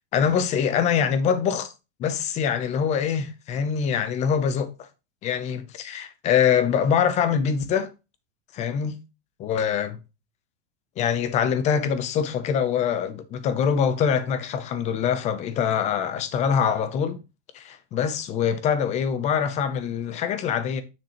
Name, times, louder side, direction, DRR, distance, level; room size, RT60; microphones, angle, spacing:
voice 1, 0.1-1.7 2.0-4.9 5.2-7.9 8.5-9.0 9.4-10.0 11.0-17.2 17.5-20.8, left 7 dB, 20° left, 0.5 m, -24 dB
7.0 x 6.0 x 2.9 m
supercardioid pair, 160°, 35 cm